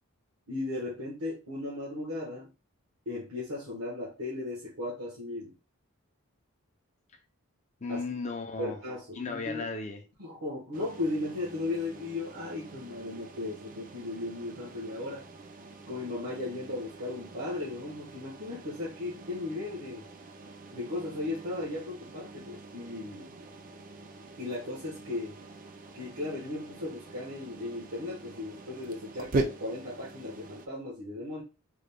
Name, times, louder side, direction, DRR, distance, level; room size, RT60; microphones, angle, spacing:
voice 1, 0.5-2.5 3.1-5.6 7.9-8.0 8.6-9.7 10.2-15.2 15.9-20.1 20.7-23.4 24.4-25.3 25.9-31.4, left 2 dB, 85° right, 1.2 m, -36 dB
voice 2, 7.8-8.8 9.1-10.0, left 3 dB, 30° left, 0.5 m, -35 dB
sound 1, 10.7-30.7, right 2 dB, 40° right, 0.4 m, -42 dB
3.7 x 3.4 x 2.2 m
head